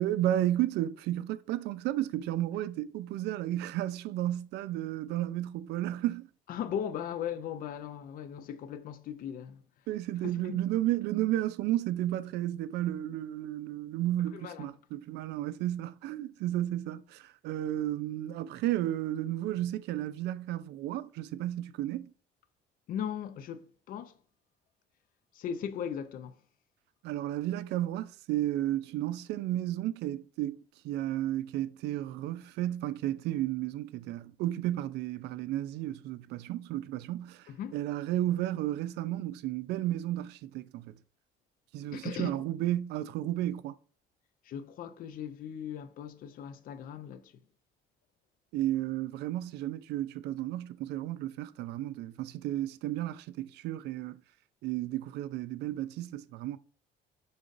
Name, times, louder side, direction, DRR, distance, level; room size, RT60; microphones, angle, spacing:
voice 1, 0.0-6.3 9.9-22.1 27.0-41.0 41.7-43.8 48.5-54.2 54.6-56.6, right 13 dB, 80° right, 0.4 m, -33 dB
voice 2, 6.5-9.6 10.3-10.6 14.3-14.7 22.9-24.2 25.3-26.4 37.5-37.8 41.9-42.4 44.4-47.4, left 8 dB, 55° left, 0.5 m, -38 dB
5.2 x 3.9 x 2.5 m
cardioid pair, 110°, 17 cm